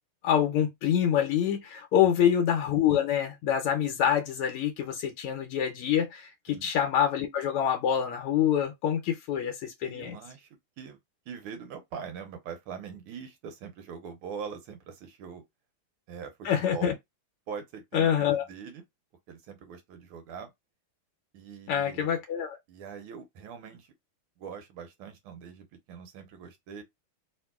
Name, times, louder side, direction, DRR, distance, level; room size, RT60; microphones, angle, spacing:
voice 1, 0.2-10.2 16.4-16.9 17.9-18.4 21.7-22.6, left 9 dB, 85° left, 1.6 m, -26 dB
voice 2, 9.8-10.5 10.8-11.0 11.3-15.4 16.1-16.9 17.5-18.8 19.3-20.5 21.3-22.1 22.7-23.9 24.4-26.8, right 6 dB, 80° right, 1.7 m, -42 dB
3.5 x 2.9 x 2.2 m
omnidirectional pair, 2.4 m